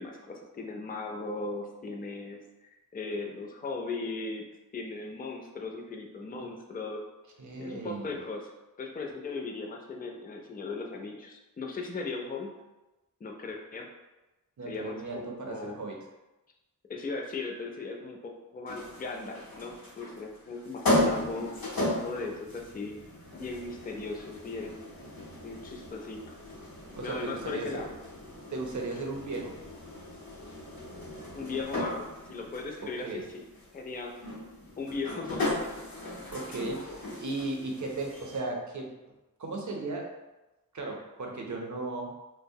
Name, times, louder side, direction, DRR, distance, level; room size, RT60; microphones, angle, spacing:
voice 1, 0.0-2.5 2.9-4.5 4.7-7.0 7.6-8.5 8.8-12.5 13.2-13.9 14.6-15.8 16.9-23.0 23.3-24.9 25.4-26.4 27.0-27.9 31.3-33.4 33.7-34.1 34.8-35.9, left 3 dB, 25° left, 2 dB, 0.4 m, -38 dB
voice 2, 7.4-8.2 14.6-16.0 26.9-27.8 28.5-29.6 32.8-33.2 36.3-38.9 39.4-40.1 40.7-42.1, right 2 dB, 60° right, 1 dB, 0.5 m, -36 dB
sound 1, 18.7-38.4, left 1 dB, 85° left, 0.7 m, -36 dB
2.8 x 2.0 x 2.6 m, 1.0 s
wide cardioid pair, 45°, 34 cm